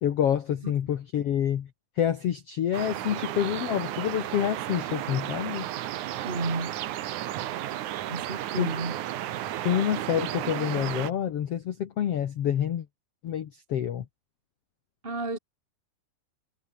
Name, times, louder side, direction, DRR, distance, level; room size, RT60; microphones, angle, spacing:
voice 1, 0.0-1.7 2.0-5.7 8.6-8.7 9.6-12.8 13.2-14.0, left 10 dB, 75° left, 1.4 m, -27 dB
sound 1, 2.7-11.1, right 13 dB, 65° right, 2.1 m, -33 dB
voice 2, 6.2-6.8 8.1-9.0 15.0-15.4, right 2 dB, 15° right, 2.2 m, -32 dB
omnidirectional pair, 4.8 m